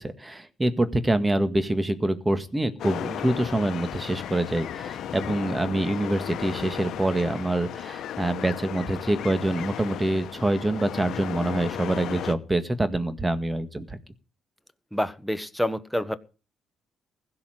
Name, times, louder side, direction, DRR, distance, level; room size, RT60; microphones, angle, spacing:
voice 1, 0.0-14.0, right 1 dB, 15° right, 10 dB, 1.8 m, -26 dB
sound 1, 2.8-12.3, left 10 dB, 75° left, 1.0 m, -35 dB
voice 2, 14.9-16.2, equal, ahead, 11 dB, 1.2 m, -27 dB
16.0 x 5.8 x 9.1 m, 0.36 s
cardioid pair, 90°, 0 cm